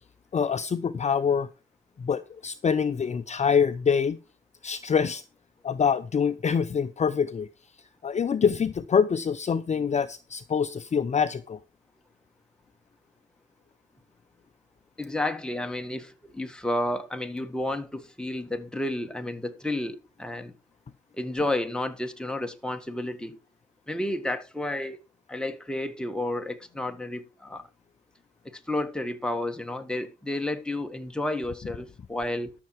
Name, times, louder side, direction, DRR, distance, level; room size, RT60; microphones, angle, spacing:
voice 1, 0.3-1.5 2.0-4.2 4.6-5.2 5.6-7.5 8.0-11.6, left 6 dB, 35° left, 0.7 m, -25 dB
voice 2, 15.0-20.5 21.2-23.4 23.9-25.0 25.3-27.6 28.7-32.5, left 1 dB, 5° left, 1.7 m, -31 dB
12.5 x 6.9 x 4.6 m
cardioid pair, 90°, 20 cm